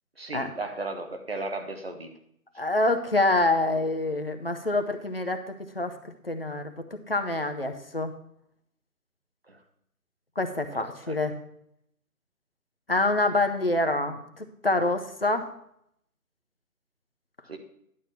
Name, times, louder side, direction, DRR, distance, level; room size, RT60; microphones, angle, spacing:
voice 1, 0.2-2.1 9.5-9.6 10.7-11.2 17.5-17.6, right 2 dB, 40° right, 6 dB, 1.2 m, -35 dB
voice 2, 2.6-5.9 6.2-8.1 10.4-11.3 12.9-15.5, left 2 dB, 40° left, 6 dB, 0.8 m, -26 dB
11.0 x 4.5 x 6.6 m, 0.72 s
figure-of-eight pair, 175°, 45 cm